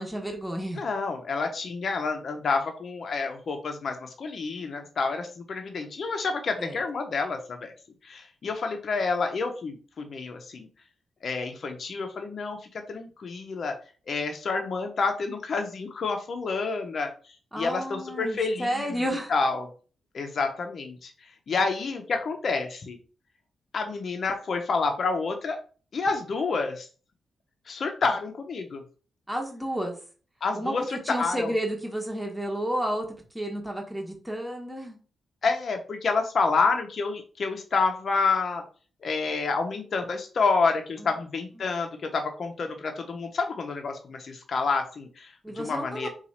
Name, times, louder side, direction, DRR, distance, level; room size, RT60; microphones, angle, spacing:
voice 1, 0.0-0.8 6.6-6.8 17.5-19.3 29.3-30.0 30.5-33.1 33.3-35.0 41.0-41.1 45.4-46.1, equal, 5° right, 1 dB, 1.0 m, -31 dB
voice 2, 0.8-7.7 8.0-10.7 11.2-13.8 14.1-17.1 17.5-18.9 19.3-19.7 20.1-23.0 23.7-25.6 25.9-26.9 27.7-28.8 30.4-31.5 35.4-38.6 39.0-46.1, left 4 dB, 60° left, 4 dB, 0.5 m, -28 dB
2.8 x 2.3 x 4.0 m, 0.39 s
cardioid pair, 60°, 0 cm